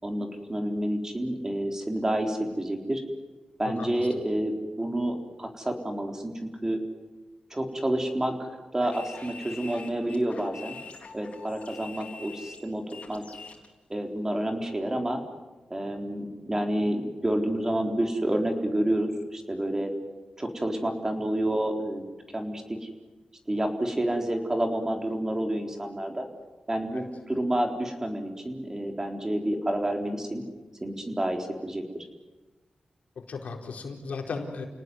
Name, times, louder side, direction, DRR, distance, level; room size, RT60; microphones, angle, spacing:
voice 1, 0.0-3.0 3.6-6.8 7.5-10.8 11.1-13.2 13.9-15.2 15.7-19.9 20.4-22.9 23.5-26.3 26.7-30.4 30.8-31.8, right 1 dB, 20° right, 4 dB, 4.0 m, -29 dB
voice 2, 3.6-4.1 26.9-27.0 33.2-34.7, left 4 dB, 85° left, 2 dB, 4.4 m, -36 dB
sound 1, 8.8-13.7, left 4 dB, 70° left, 4.3 m, -45 dB
30.0 x 18.5 x 9.5 m, 1.2 s
wide cardioid pair, 90°, 2 cm